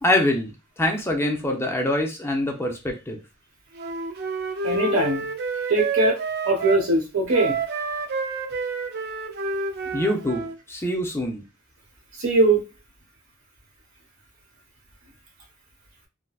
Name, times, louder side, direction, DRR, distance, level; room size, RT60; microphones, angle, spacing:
voice 1, 0.0-3.2 9.9-11.4, left 1 dB, 10° left, 2 dB, 0.5 m, -25 dB
Wind instrument woodwind instrument, 3.8-6.8 7.3-10.6, right 4 dB, 50° right, 0.4 m, -29 dB
voice 2, 4.6-5.2 5.7-6.2 6.4-7.6 12.2-12.6, right 2 dB, 85° right, 1 dB, 1.1 m, -20 dB
3.7 x 2.1 x 2.3 m, 0.28 s
head